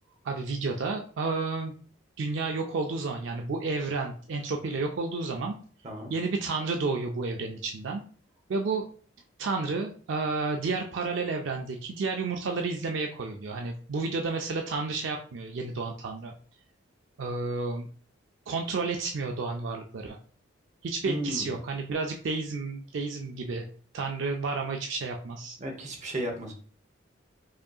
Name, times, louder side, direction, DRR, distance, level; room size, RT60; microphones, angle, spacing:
voice 1, 0.2-1.7 2.2-5.5 6.1-8.0 8.5-8.9 9.4-16.3 17.2-17.9 18.5-20.2 20.8-23.7 23.9-25.6, right 3 dB, 65° right, 2 dB, 0.4 m, -31 dB
voice 2, 21.0-21.6 25.6-26.5, equal, 35° right, 2 dB, 0.8 m, -34 dB
4.9 x 2.7 x 2.3 m, 0.43 s
head